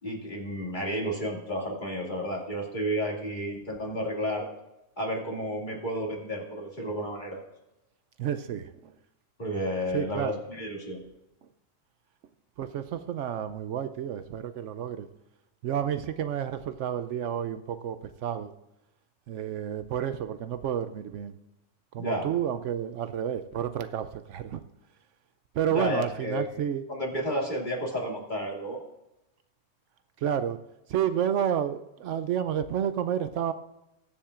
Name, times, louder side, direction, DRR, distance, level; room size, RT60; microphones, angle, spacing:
voice 1, 0.0-4.5 5.0-7.4 9.4-11.0 22.0-22.3 25.7-26.4 26.9-28.8, equal, 35° left, -2 dB, 2.5 m, -31 dB
voice 2, 8.2-8.9 9.9-10.4 12.6-15.1 15.6-18.5 19.3-21.4 21.9-24.6 25.5-26.8 30.2-30.6 30.9-33.5, right 9 dB, 75° right, 11 dB, 0.9 m, -30 dB
21.5 x 7.2 x 2.5 m, 0.92 s
omnidirectional pair, 1.3 m